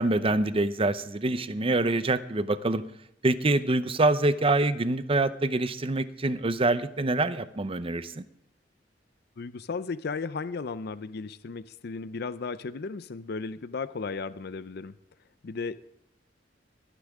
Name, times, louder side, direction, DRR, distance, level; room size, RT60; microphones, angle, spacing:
voice 1, 0.0-2.8 3.2-8.2, right 2 dB, 30° right, 13 dB, 0.7 m, -25 dB
voice 2, 9.4-14.9 15.4-15.8, left 4 dB, 60° left, 14 dB, 0.5 m, -35 dB
24.5 x 10.0 x 3.6 m, 0.77 s
head